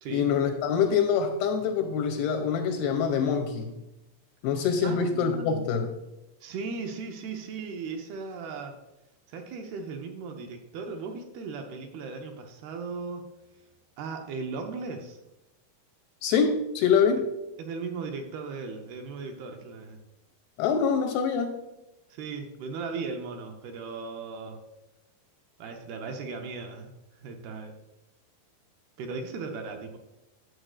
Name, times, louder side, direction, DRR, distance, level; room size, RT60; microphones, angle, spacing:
voice 1, 0.1-3.7 4.4-5.9 16.2-17.3 20.6-21.6, left 6 dB, 85° left, 5 dB, 2.4 m, -25 dB
voice 2, 4.8-5.7 6.4-8.7 9.3-13.2 14.0-15.2 17.6-20.0 22.1-24.6 25.6-26.9 27.2-27.8 29.0-30.0, right 4 dB, 80° right, 4 dB, 2.4 m, -37 dB
11.0 x 7.6 x 2.4 m, 0.95 s
omnidirectional pair, 5.0 m